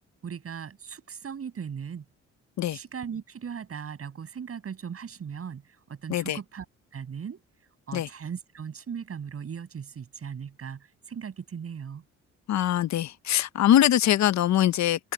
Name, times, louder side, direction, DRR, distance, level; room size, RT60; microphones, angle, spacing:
voice 1, 0.2-2.0 2.7-6.7 6.9-7.4 7.9-12.0, right 7 dB, 50° right, 7.6 m, -38 dB
voice 2, 12.5-15.1, left 12 dB, 65° left, 0.9 m, -23 dB
cardioid pair, 90°, 30 cm